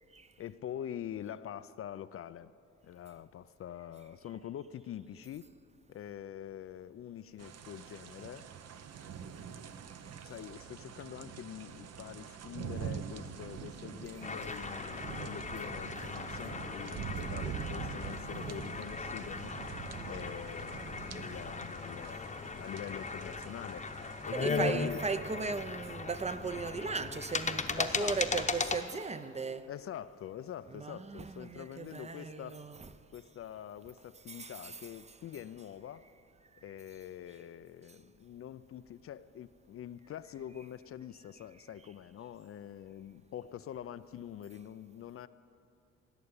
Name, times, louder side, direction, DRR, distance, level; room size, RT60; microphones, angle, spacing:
voice 1, 0.4-2.5 2.8-5.5 5.9-8.5 9.0-9.1 10.2-19.8 20.1-23.9 24.3-25.0 27.8-28.4 29.7-32.6 33.1-36.1 36.6-45.3, left 10 dB, 50° left, 0.4 m, -45 dB
sound 1, 7.4-24.8, right 7 dB, 55° right, 0.8 m, -44 dB
sound 2, 14.2-28.8, left 4 dB, 25° left, 0.9 m, -38 dB
voice 2, 24.3-29.6 30.7-32.9 34.3-35.2, right 4 dB, 20° right, 0.5 m, -37 dB
17.0 x 6.7 x 9.6 m
cardioid pair, 90°, 30 cm